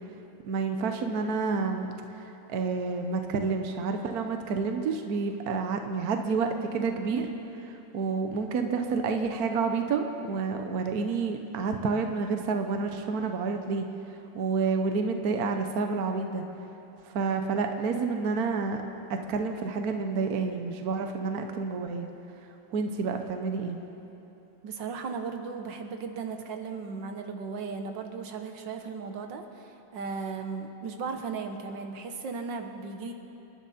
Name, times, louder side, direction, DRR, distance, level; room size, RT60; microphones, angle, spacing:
voice 1, 0.4-2.2 2.5-7.3 7.6-13.9 14.3-16.4 17.1-18.8 19.1-22.1 22.7-23.8, right 4 dB, 60° right, 5 dB, 1.3 m, -29 dB
voice 2, 24.6-33.1, right 5 dB, 90° right, 6 dB, 1.8 m, -36 dB
28.0 x 11.0 x 4.3 m, 2.9 s
omnidirectional pair, 1.9 m